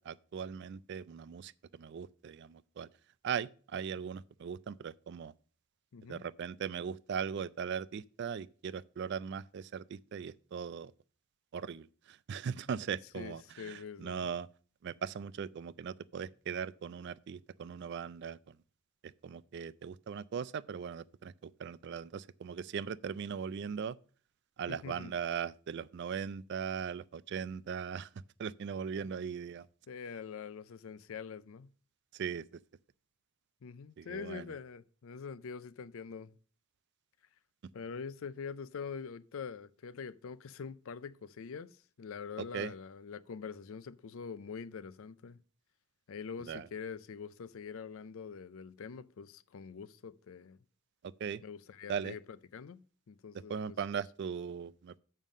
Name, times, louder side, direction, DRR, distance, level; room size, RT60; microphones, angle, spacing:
voice 1, 0.0-2.9 3.2-5.3 6.1-10.9 11.5-14.5 14.8-18.6 19.0-24.0 24.6-28.1 28.4-29.7 32.1-32.6 34.0-34.5 42.4-42.7 46.4-46.7 51.0-51.4 51.9-52.2 53.5-55.0, right 7 dB, 50° right, 0.3 m, -39 dB
voice 2, 5.9-6.2 13.1-14.3 24.7-25.1 28.9-29.1 29.9-31.7 33.6-36.4 37.7-45.4 46.1-50.6 51.4-52.2 52.5-53.8, left 6 dB, 65° left, 0.4 m, -44 dB
7.2 x 5.4 x 6.3 m
head